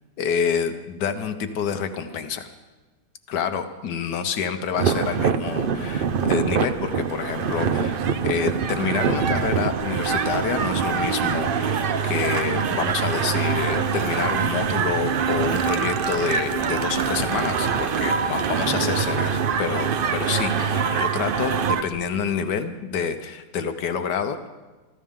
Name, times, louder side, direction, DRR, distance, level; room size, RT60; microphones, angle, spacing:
voice 1, 0.2-2.5 3.3-24.5, left 7 dB, 80° left, 8 dB, 1.5 m, -28 dB
sound 1, 4.8-21.8, right 6 dB, 85° right, 0.4 m, -24 dB
sound 2, 5.6-22.1, left 1 dB, 40° left, 3.0 m, -44 dB
25.0 x 14.5 x 3.7 m, 1.2 s
omnidirectional pair, 1.8 m